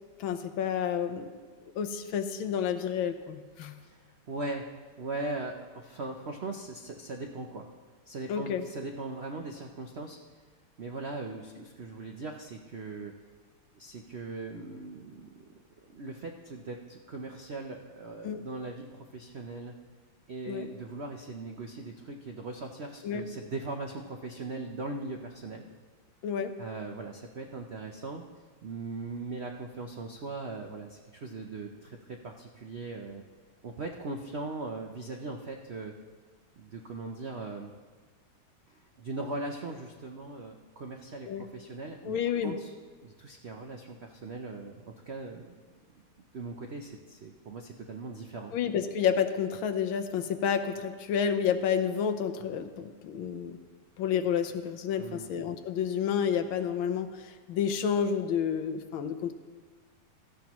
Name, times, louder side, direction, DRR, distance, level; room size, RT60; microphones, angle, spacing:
voice 1, 0.2-1.3 1.7-3.7 8.3-8.6 18.2-18.4 20.5-20.7 23.0-23.2 26.2-26.5 41.2-41.4 42.0-42.6 48.5-53.6 54.0-59.3, left 8 dB, 75° left, 8 dB, 1.6 m, -30 dB
voice 2, 3.6-4.7 5.0-7.7 8.1-10.2 10.8-13.1 13.7-15.3 15.9-19.7 20.3-25.7 26.6-28.2 28.6-33.2 33.6-35.9 36.6-37.7 38.7-42.7 43.0-45.6 45.9-46.0 46.3-48.5 55.0-55.3, right 3 dB, 85° right, 2 dB, 0.5 m, -39 dB
16.5 x 13.0 x 3.0 m, 1.5 s
omnidirectional pair, 2.3 m